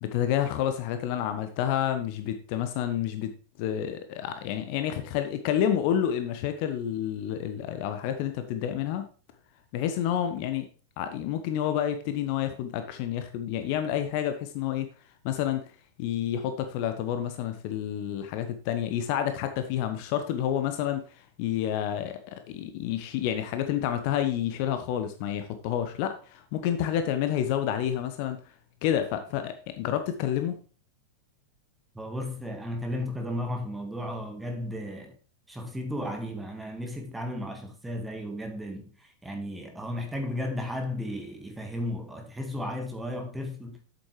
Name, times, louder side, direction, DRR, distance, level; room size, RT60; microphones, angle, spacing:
voice 1, 0.0-9.1 9.7-10.7 11.0-14.9 15.2-15.6 16.0-21.1 21.4-28.4 28.8-30.6, left 10 dB, 45° left, 1.0 m, -29 dB
voice 2, 32.0-35.2 35.5-38.9 39.2-43.8, left 1 dB, 5° right, 1.8 m, -34 dB
8.4 x 7.8 x 3.2 m
figure-of-eight pair, 90°, 0 cm